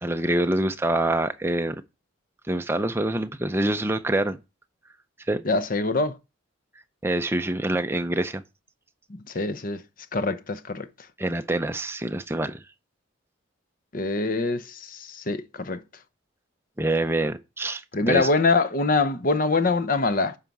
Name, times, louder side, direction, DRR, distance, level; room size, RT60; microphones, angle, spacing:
voice 1, 0.0-1.8 2.5-4.4 5.3-5.4 7.0-8.4 11.2-12.6 16.8-18.3, right 1 dB, 10° right, 0.5 m, -25 dB
voice 2, 5.4-6.2 9.1-9.8 10.1-10.9 13.9-15.8 17.9-20.4, left 3 dB, 45° left, 0.7 m, -24 dB
9.3 x 5.7 x 4.7 m
head